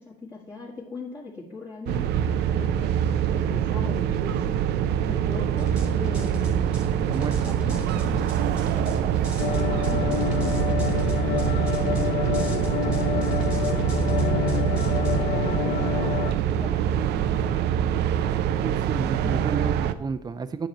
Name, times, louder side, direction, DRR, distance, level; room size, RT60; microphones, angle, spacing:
voice 1, 0.0-2.9 3.3-4.6 5.1-6.6 7.4-9.1 9.4-12.4 12.7-14.9 15.2-18.1 19.2-19.6, left 3 dB, 25° left, -6 dB, 1.6 m, -40 dB
sound 1, 1.9-19.9, right 9 dB, 80° right, 0.5 m, -25 dB
sound 2, 5.6-15.2, right 2 dB, 5° right, 1.4 m, -35 dB
voice 2, 7.1-7.6 18.6-20.7, right 5 dB, 25° right, 12 dB, 0.6 m, -31 dB
sound 3, 9.4-16.3, left 11 dB, 70° left, 0.5 m, -28 dB
9.2 x 6.6 x 4.2 m, 0.78 s
cardioid pair, 110°, 17 cm